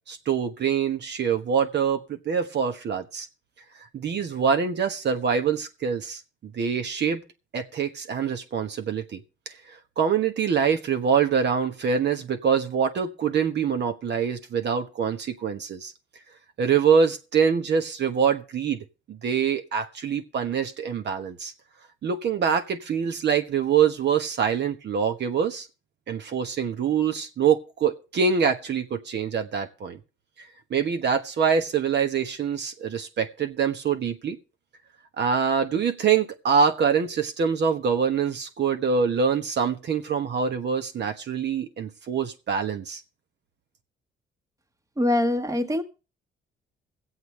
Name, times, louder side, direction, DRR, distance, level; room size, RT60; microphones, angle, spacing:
voice 1, 0.1-3.3 3.9-7.2 7.5-9.2 9.5-15.9 16.6-18.8 19.1-21.5 22.0-25.7 26.1-30.0 30.7-34.4 35.2-43.0, right 6 dB, 60° right, 1.3 m, -25 dB
voice 2, 45.0-45.8, left 1 dB, 15° right, 1.4 m, -23 dB
23.5 x 8.0 x 3.3 m
cardioid pair, 90°, 20 cm